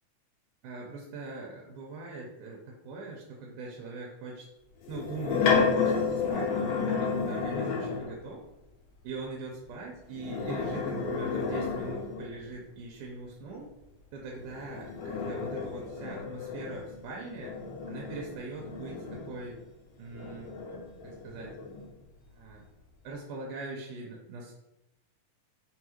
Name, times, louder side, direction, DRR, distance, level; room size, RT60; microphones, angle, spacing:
voice 1, 0.6-4.5 4.9-8.4 9.0-13.7 14.1-17.6 17.9-19.6 20.0-20.5 21.0-21.6 22.3-22.7 23.0-24.5, right 3 dB, 85° right, -2 dB, 2.2 m, -41 dB
sound 1, 4.8-8.2 10.1-12.5 14.4-19.6 20.1-21.9, left 5 dB, 85° left, 2.4 m, -31 dB
5.4 x 2.3 x 3.1 m, 0.89 s
omnidirectional pair, 3.7 m